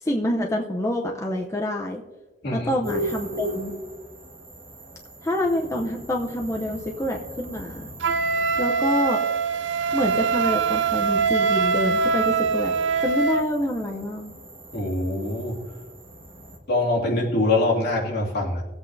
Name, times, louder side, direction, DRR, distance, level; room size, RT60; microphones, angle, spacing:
voice 1, 0.0-2.0 2.5-3.7 5.2-7.9 8.6-9.2 9.9-12.7 13.0-14.3, left 1 dB, 15° left, 0 dB, 0.7 m, -27 dB
sound 1, 2.8-16.6, right 1 dB, 30° right, 1.6 m, -39 dB
Wind instrument woodwind instrument, 8.0-13.5, right 5 dB, 80° right, 0.5 m, -23 dB
voice 2, 14.7-15.6 16.7-18.6, left 2 dB, 60° left, -3 dB, 2.4 m, -24 dB
19.5 x 8.0 x 2.7 m, 1.2 s
head